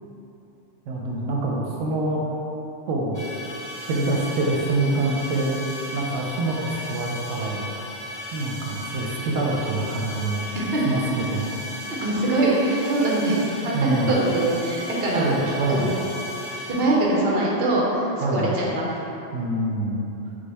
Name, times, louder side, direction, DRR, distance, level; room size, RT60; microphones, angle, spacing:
voice 1, 0.9-2.2 2.9-3.2 3.9-5.6 5.9-7.7 8.3-10.5 10.8-11.5 13.7-14.1 15.1-15.8 18.2-18.5 19.3-20.0, right 2 dB, 85° right, -2 dB, 1.0 m, -25 dB
sound 1, 3.1-17.2, left 1 dB, 20° left, 0.7 m, -36 dB
voice 2, 12.0-15.3 15.7-16.0 16.7-19.0, right 2 dB, 55° right, -4 dB, 0.9 m, -23 dB
5.0 x 2.2 x 4.1 m, 3.0 s
omnidirectional pair, 1.3 m